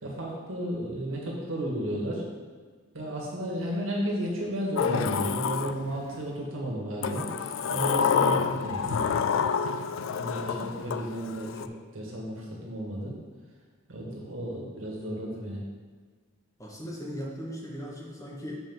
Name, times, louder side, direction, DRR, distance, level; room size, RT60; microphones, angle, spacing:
voice 1, 0.0-2.2 2.9-9.0 10.1-13.1 13.9-15.6, right 1 dB, 85° right, -3 dB, 1.9 m, -33 dB
Sliding door, 4.8-6.2 7.0-11.7, left 6 dB, 75° left, 0.3 m, -28 dB
voice 2, 16.6-18.6, equal, 15° left, -3 dB, 1.1 m, -38 dB
6.8 x 3.8 x 6.2 m, 1.5 s
head